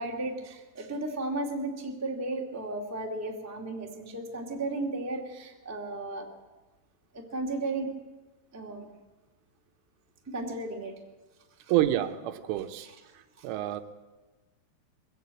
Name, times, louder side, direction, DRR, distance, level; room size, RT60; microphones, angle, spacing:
voice 1, 0.0-6.3 7.1-7.9 8.5-8.9 10.3-11.0 11.6-11.7 12.8-13.0 13.4-13.5, right 2 dB, 15° right, 0 dB, 0.6 m, -34 dB
voice 2, 11.7-12.9 13.4-13.8, right 13 dB, 85° right, 8 dB, 3.5 m, -27 dB
22.0 x 16.0 x 8.5 m, 1.1 s
omnidirectional pair, 5.6 m